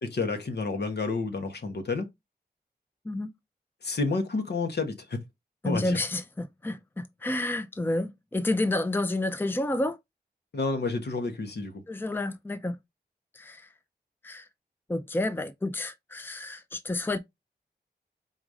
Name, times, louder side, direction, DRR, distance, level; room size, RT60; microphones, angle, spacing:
voice 1, 0.0-2.1 3.8-5.2 5.6-6.0 10.5-11.8, left 3 dB, 75° left, 1.0 m, -30 dB
voice 2, 5.6-10.0 11.9-12.8 13.3-13.7 14.2-14.5 14.9-17.2, left 2 dB, 10° left, 0.5 m, -30 dB
4.0 x 2.5 x 4.7 m
wide cardioid pair, 65°, 17 cm